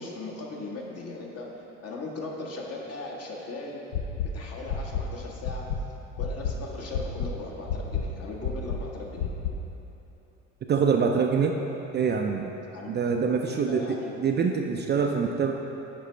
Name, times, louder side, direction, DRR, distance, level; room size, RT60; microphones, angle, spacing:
voice 1, 0.0-3.8 4.3-5.7 6.2-9.3 12.7-12.9 13.5-14.1, left 2 dB, 40° left, -1 dB, 1.3 m, -38 dB
sound 1, 3.9-4.3 4.7-5.0 5.4-5.8 6.2-6.5 6.9-7.3 7.7-8.0 8.4-8.8 9.2-9.5, left 10 dB, 65° left, 0.6 m, -29 dB
voice 2, 10.7-11.6 11.9-12.5 12.9-15.5, right 6 dB, 30° right, 2 dB, 0.4 m, -25 dB
8.4 x 5.1 x 3.3 m, 3.0 s
hypercardioid pair, 60°, 37 cm